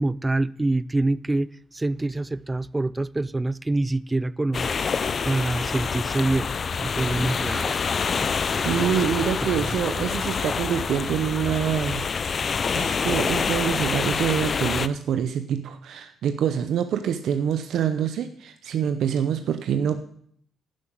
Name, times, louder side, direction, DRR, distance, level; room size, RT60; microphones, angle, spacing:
voice 1, 0.0-4.8 5.2-6.5 6.8-7.8 8.2-8.9, right 2 dB, 15° right, 0.4 m, -26 dB
sound 1, 4.5-14.9, left 5 dB, 45° left, 0.5 m, -26 dB
voice 2, 8.6-20.0, right 8 dB, 75° right, 0.7 m, -26 dB
11.5 x 6.0 x 7.8 m
cardioid pair, 90°, 0 cm